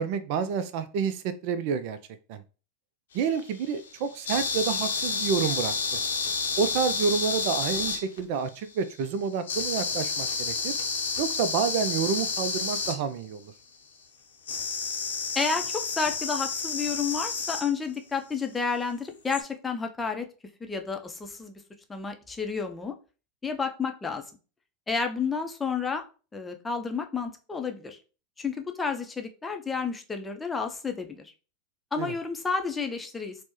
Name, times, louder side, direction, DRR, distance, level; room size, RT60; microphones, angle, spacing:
voice 1, 0.0-2.0 2.3-2.4 3.1-6.0 6.6-10.8 11.2-13.5 32.0-32.1, right 6 dB, 55° right, 13 dB, 0.4 m, -29 dB
sound 1, 3.1-8.4 9.4-13.0 14.4-17.7 19.3-19.4, left 4 dB, 70° left, 0.7 m, -30 dB
voice 2, 15.3-20.3 20.6-21.6 21.9-22.9 23.4-24.2 24.9-26.1 26.3-28.0 28.4-31.3 31.9-33.4, left 5 dB, 15° left, 5 dB, 0.6 m, -31 dB
4.2 x 2.1 x 3.0 m, 0.35 s
hypercardioid pair, 90°, 0 cm